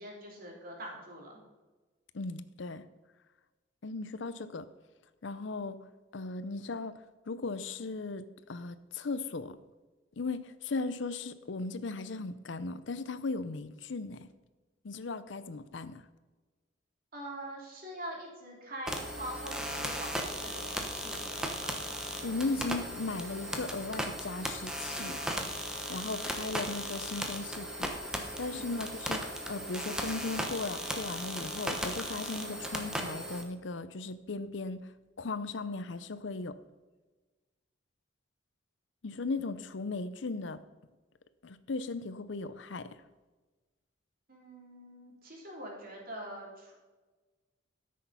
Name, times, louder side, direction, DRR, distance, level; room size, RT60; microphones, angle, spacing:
voice 1, 0.0-1.4 17.1-21.8 28.5-28.7 44.3-46.7, right 1 dB, 50° right, -1 dB, 3.0 m, -44 dB
voice 2, 2.1-2.8 3.8-4.7 5.2-5.8 6.1-9.6 10.2-14.3 14.8-16.0 22.2-25.2 25.9-27.9 28.4-34.9 35.2-36.6 39.0-40.6 41.4-43.0, left 3 dB, 70° left, 13 dB, 0.6 m, -37 dB
sound 1, 18.9-33.4, equal, 5° right, 1.1 m, -37 dB
13.0 x 6.5 x 5.5 m, 1.2 s
head